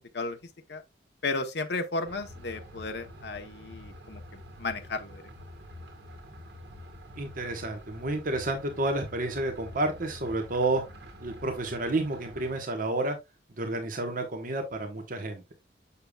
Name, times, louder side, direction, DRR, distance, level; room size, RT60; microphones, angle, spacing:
voice 1, 1.2-4.2 4.6-5.2, left 3 dB, 65° left, 0.8 m, -33 dB
sound 1, 2.0-12.6, equal, 65° right, 1.9 m, -47 dB
voice 2, 7.2-10.8 11.2-13.2 13.6-15.4, right 2 dB, 50° right, 1.1 m, -30 dB
6.8 x 6.6 x 2.3 m
head